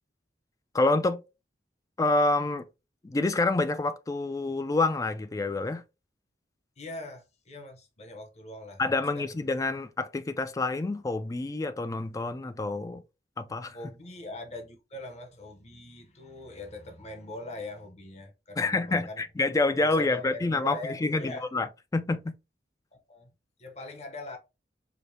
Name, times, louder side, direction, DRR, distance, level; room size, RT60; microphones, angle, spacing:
voice 1, 0.7-1.2 2.0-2.6 3.0-5.8 8.8-13.0 13.4-13.8 18.6-22.3, left 2 dB, 20° left, 0.3 m, -27 dB
voice 2, 6.8-8.8 9.2-9.4 13.7-19.2 19.8-21.5 22.9-23.3 23.6-24.4, left 2 dB, 40° left, 0.8 m, -42 dB
5.0 x 2.0 x 2.7 m
head